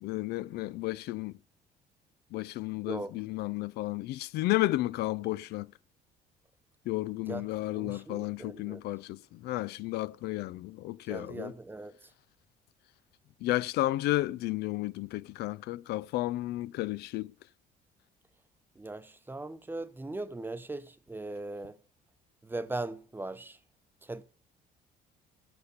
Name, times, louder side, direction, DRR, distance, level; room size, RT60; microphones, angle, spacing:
voice 1, 0.0-1.4 2.3-5.7 6.9-11.5 13.4-17.3, left 17 dB, 75° left, 0.4 m, -32 dB
voice 2, 7.3-8.8 11.1-12.1 18.8-21.8 22.4-23.6 24.0-24.2, right 2 dB, 10° right, 0.8 m, -39 dB
8.2 x 6.6 x 6.6 m
cardioid pair, 110°, 17 cm